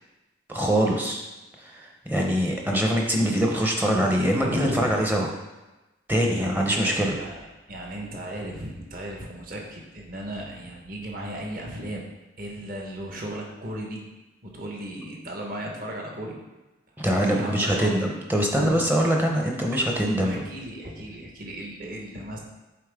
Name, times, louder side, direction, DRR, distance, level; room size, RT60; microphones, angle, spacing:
voice 1, 0.5-1.2 1.6-5.3 6.1-7.1 17.0-20.3, equal, 10° right, 0 dB, 0.6 m, -23 dB
voice 2, 4.3-4.9 6.3-12.1 12.4-14.1 14.4-16.4 17.3-18.1 18.5-18.8 20.2-22.4, equal, 45° right, -1 dB, 1.2 m, -35 dB
8.4 x 4.0 x 3.5 m, 1.1 s
head